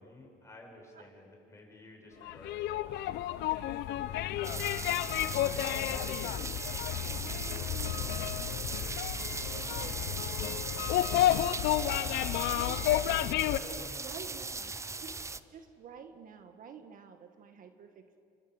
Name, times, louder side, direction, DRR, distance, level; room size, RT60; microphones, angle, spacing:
voice 1, 0.0-6.2 6.7-9.5 10.0-11.4 11.8-15.4, left 2 dB, 15° left, 0 dB, 7.7 m, -54 dB
sound 1, 2.2-13.6, left 13 dB, 85° left, 0.9 m, -31 dB
sound 2, 4.4-15.4, right 3 dB, 15° right, 0.8 m, -38 dB
Dog, 7.0-8.9 9.6-10.4 12.6-13.5, right 6 dB, 75° right, 2.1 m, -53 dB
voice 2, 9.5-10.0 12.5-12.8 13.5-15.1 15.5-18.2, right 6 dB, 55° right, 7 dB, 1.8 m, -49 dB
29.5 x 25.0 x 8.1 m, 2.4 s
cardioid pair, 110°, 17 cm